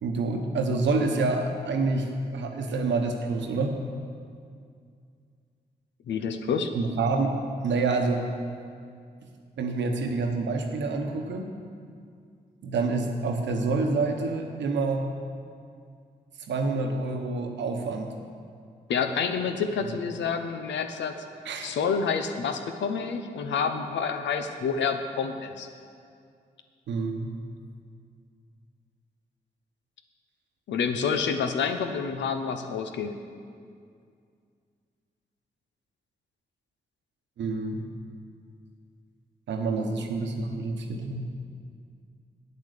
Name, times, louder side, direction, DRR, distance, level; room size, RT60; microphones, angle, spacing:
voice 1, 0.0-3.8 6.7-8.3 9.6-11.5 12.6-15.1 16.5-18.1 21.4-21.7 26.9-27.3 37.4-37.8 39.5-41.3, right 3 dB, 85° right, 4 dB, 1.0 m, -27 dB
voice 2, 6.1-6.7 18.9-21.1 21.6-25.7 30.7-33.2, left 6 dB, 85° left, 7 dB, 0.7 m, -28 dB
8.7 x 8.3 x 6.6 m, 2.3 s
supercardioid pair, 45°, 18 cm